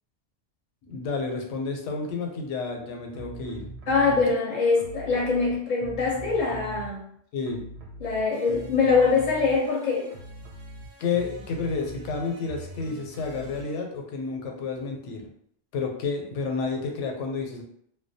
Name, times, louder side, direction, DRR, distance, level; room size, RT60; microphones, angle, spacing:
voice 1, 0.8-3.7 4.1-4.2 7.3-7.6 11.0-15.2 15.7-17.6, left 4 dB, 90° left, 2 dB, 0.9 m, -30 dB
sound 1, 3.1-4.3 4.7-7.2 7.4-13.8, right 2 dB, 70° right, 0.8 m, -42 dB
voice 2, 3.9-7.0 8.0-10.1, left 4 dB, 55° left, -4 dB, 0.5 m, -23 dB
2.2 x 2.1 x 2.6 m, 0.70 s
omnidirectional pair, 1.2 m